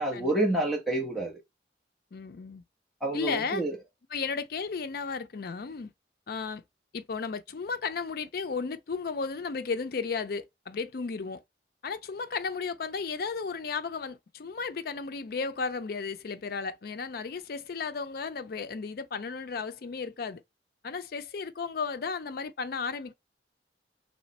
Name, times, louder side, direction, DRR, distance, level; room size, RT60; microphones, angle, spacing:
voice 1, 0.0-1.4 3.0-3.8, right 1 dB, ahead, 1.1 m, -28 dB
voice 2, 2.1-2.6 3.1-3.6 4.1-5.9 6.3-6.6 6.9-11.4 11.8-20.4 20.8-23.1, left 5 dB, 55° left, 0.4 m, -34 dB
3.2 x 3.1 x 4.1 m
head